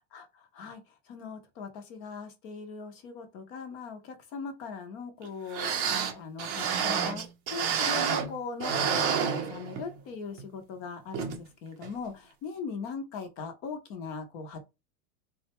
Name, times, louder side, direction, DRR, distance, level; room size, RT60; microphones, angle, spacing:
voice 1, 0.1-5.8 6.1-7.2 7.5-14.6, left 5 dB, 25° left, 0.5 m, -40 dB
sound 1, 5.2-5.3 5.5-8.3 8.6-10.0 10.4-10.5 11.1-11.4 11.8-11.9, right 7 dB, 30° right, 0.5 m, -29 dB
3.7 x 2.2 x 2.8 m
supercardioid pair, 165°, 43 cm